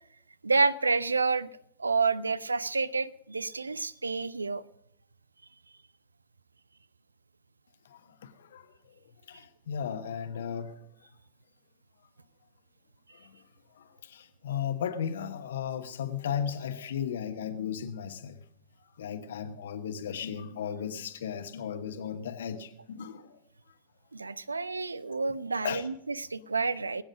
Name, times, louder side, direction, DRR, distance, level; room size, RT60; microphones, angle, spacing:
voice 1, 0.4-1.5 1.8-4.6 24.1-27.0, right 4 dB, 80° right, 0.4 m, -29 dB
voice 2, 7.9-8.7 9.3-10.8 13.1-13.3 13.8-18.4 19.0-23.4 25.6-25.9, left 8 dB, 60° left, 1.1 m, -35 dB
20.5 x 8.9 x 5.2 m
figure-of-eight pair, 90°, 0 cm